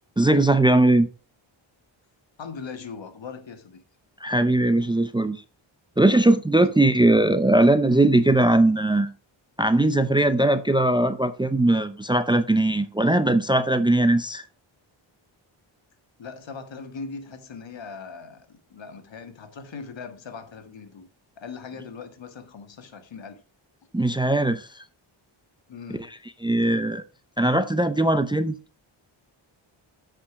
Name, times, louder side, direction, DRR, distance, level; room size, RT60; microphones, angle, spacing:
voice 1, 0.2-1.1 4.2-5.4 6.0-9.1 9.6-14.4 23.9-24.7 25.9-26.0 26.4-27.0 27.4-28.5, right 1 dB, 10° right, 0.6 m, -20 dB
voice 2, 2.4-3.8 6.6-6.7 16.2-21.1 21.4-23.4 25.7-26.1, left 5 dB, 60° left, 1.6 m, -40 dB
8.3 x 5.1 x 4.9 m
cardioid pair, 60°, 49 cm